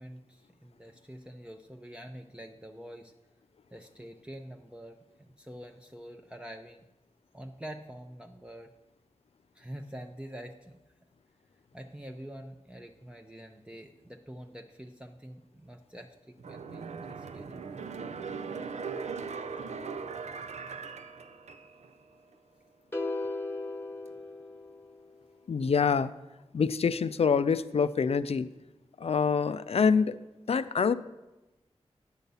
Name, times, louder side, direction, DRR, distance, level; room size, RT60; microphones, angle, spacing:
voice 1, 0.0-3.1 3.7-6.9 7.3-8.7 9.5-10.8 11.7-17.6, equal, 10° right, 2 dB, 0.6 m, -46 dB
sound 1, 16.4-22.0 22.3-22.4, right 5 dB, 75° right, 0.5 m, -39 dB
sound 2, 22.9-25.2, left 2 dB, 20° left, 1.0 m, -36 dB
voice 2, 25.5-26.1 26.5-28.5 29.0-30.2 30.5-30.9, left 6 dB, 60° left, 13 dB, 0.4 m, -26 dB
9.2 x 4.0 x 6.8 m, 1.0 s
cardioid pair, 45°, 12 cm